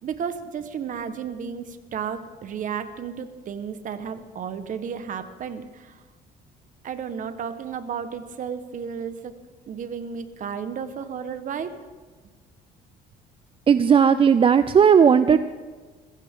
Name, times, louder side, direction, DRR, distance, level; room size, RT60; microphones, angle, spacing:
voice 1, 0.0-6.0 6.8-9.3 9.7-11.7, right 7 dB, 50° right, 10 dB, 1.3 m, -33 dB
voice 2, 13.7-15.4, right 7 dB, 30° right, 12 dB, 0.5 m, -16 dB
21.5 x 15.5 x 3.8 m, 1.4 s
cardioid pair, 110°, 17 cm